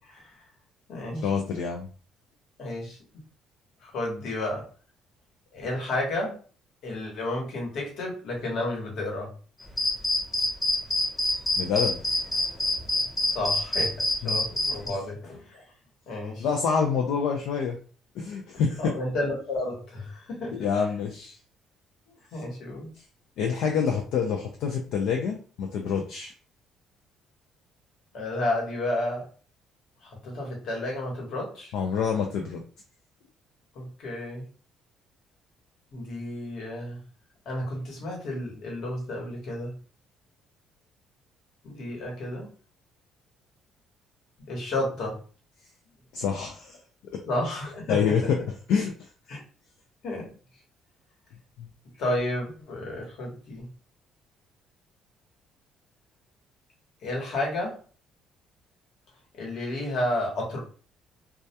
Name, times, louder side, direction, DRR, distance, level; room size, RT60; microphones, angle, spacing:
voice 1, 0.0-0.4 0.9-1.3 2.6-3.0 3.8-4.7 5.5-6.4 6.8-9.3 13.3-15.6 16.1-16.5 18.8-20.7 22.1-22.9 28.1-29.3 30.0-31.7 33.7-34.4 35.9-37.0 37.4-39.8 41.6-42.5 44.5-45.2 47.3-48.0 49.3-49.4 50.0-50.3 52.0-53.7 57.0-57.8 59.3-60.6, left 1 dB, 55° left, -2 dB, 1.0 m, -31 dB
voice 2, 1.2-1.9 11.6-12.0 14.2-14.5 16.4-17.8 18.2-18.9 20.5-21.4 23.0-23.1 23.4-26.3 31.7-32.6 46.1-46.8 47.1-47.2 47.9-49.1 51.6-51.7, left 6 dB, 70° left, 2 dB, 0.3 m, -27 dB
sound 1, 9.8-14.9, left 1 dB, 5° left, 0.7 m, -25 dB
2.2 x 2.1 x 2.7 m, 0.40 s
cardioid pair, 165°, 0 cm